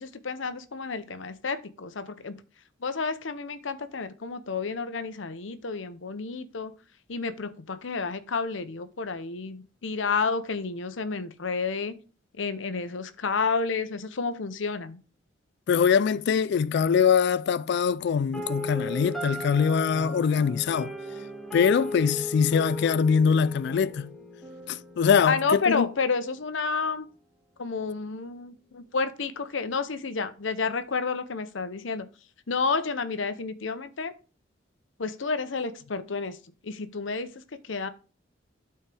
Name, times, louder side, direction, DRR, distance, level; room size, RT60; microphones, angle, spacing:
voice 1, 0.0-2.4 2.8-6.7 7.1-12.0 12.3-15.0 25.2-27.1 27.6-32.1 32.5-34.1 35.0-36.4 36.6-37.9, left 4 dB, 85° left, 0.8 m, -30 dB
voice 2, 15.7-20.9 21.5-24.1 24.7-25.9, left 6 dB, 60° left, 0.3 m, -23 dB
sound 1, 18.3-26.3, equal, ahead, 1.7 m, -37 dB
12.5 x 4.5 x 3.4 m
head